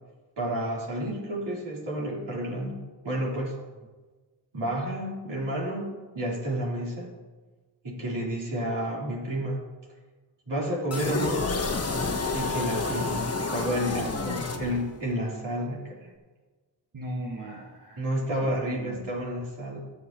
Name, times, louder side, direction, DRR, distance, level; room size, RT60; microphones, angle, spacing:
voice 1, 0.4-3.5 4.5-7.1 7.8-9.6 10.5-11.4 12.3-16.1 18.0-19.8, equal, 70° right, -5 dB, 3.9 m, -30 dB
sound 1, 10.9-15.1, left 3 dB, 35° left, 1.3 m, -29 dB
voice 2, 16.9-19.0, right 1 dB, 45° right, -3 dB, 1.6 m, -39 dB
18.0 x 7.5 x 3.1 m, 1.3 s
cardioid pair, 80°, 44 cm